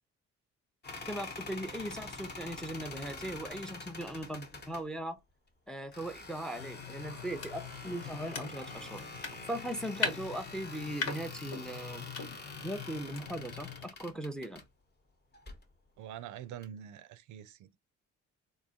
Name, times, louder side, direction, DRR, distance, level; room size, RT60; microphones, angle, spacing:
sound 1, 0.8-4.8 5.9-14.7 15.3-15.6 16.6-16.7, left 3 dB, 35° left, 0.9 m, -46 dB
voice 1, 1.1-5.2 5.7-9.0 9.5-12.1 12.6-14.6, right 1 dB, ahead, 0.4 m, -39 dB
sound 2, 6.5-13.9, left 5 dB, 55° left, 1.1 m, -41 dB
voice 2, 16.0-17.8, right 10 dB, 75° right, 0.5 m, -45 dB
3.8 x 2.7 x 2.7 m
cardioid pair, 90°, 30 cm